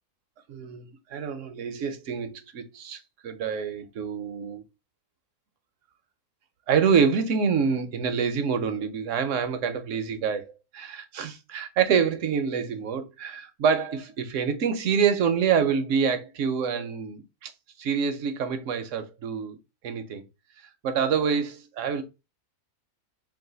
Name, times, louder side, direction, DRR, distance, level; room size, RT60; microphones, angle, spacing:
voice 1, 0.5-4.6 6.7-17.5 17.8-19.6 19.8-20.2 20.8-22.0, right 6 dB, 65° right, 0.9 m, -26 dB
3.9 x 2.5 x 3.7 m
omnidirectional pair, 1.5 m